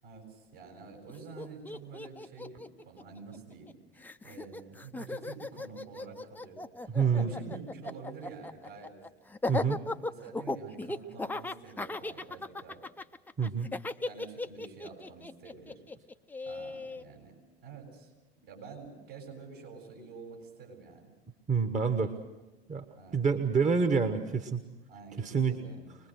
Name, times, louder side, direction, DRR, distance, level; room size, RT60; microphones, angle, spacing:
voice 1, 0.0-3.7 4.2-9.0 9.9-12.8 14.0-15.8 16.4-17.3 17.6-18.1 18.4-21.1 22.9-23.2 24.9-26.0, right 4 dB, 65° right, 1 dB, 7.8 m, -48 dB
Laughter, 1.1-1.2 1.4-3.7 4.0-17.0, left 2 dB, 5° left, 0.6 m, -37 dB
voice 2, 6.9-7.3 9.5-9.8 13.4-13.7 21.5-22.1 22.7-22.8 23.1-24.6 25.2-25.6, right 5 dB, 25° right, 8 dB, 1.4 m, -27 dB
24.5 x 20.5 x 6.5 m, 1.2 s
figure-of-eight pair, 75°, 30 cm